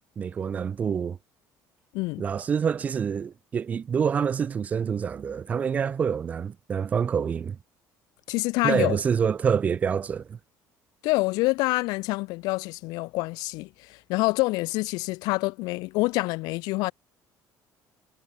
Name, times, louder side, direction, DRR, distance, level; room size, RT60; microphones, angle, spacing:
voice 1, 0.2-1.2 2.2-7.6 8.6-10.4, right 7 dB, 20° right, 0.3 m, -26 dB
voice 2, 1.9-2.2 8.3-9.0 11.0-16.9, left 23 dB, 75° left, 0.5 m, -26 dB
cardioid pair, 175°, 7 cm